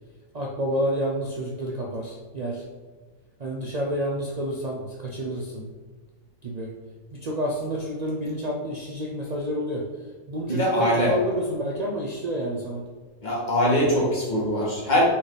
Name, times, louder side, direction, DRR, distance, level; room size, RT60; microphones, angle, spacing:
voice 1, 0.3-2.6 3.4-5.7 6.4-6.7 7.1-9.8 10.3-12.8, equal, 75° right, -2 dB, 0.3 m, -29 dB
voice 2, 10.5-11.1 13.2-15.0, equal, 30° left, -5 dB, 1.8 m, -22 dB
6.2 x 4.0 x 3.9 m, 1.4 s
omnidirectional pair, 1.6 m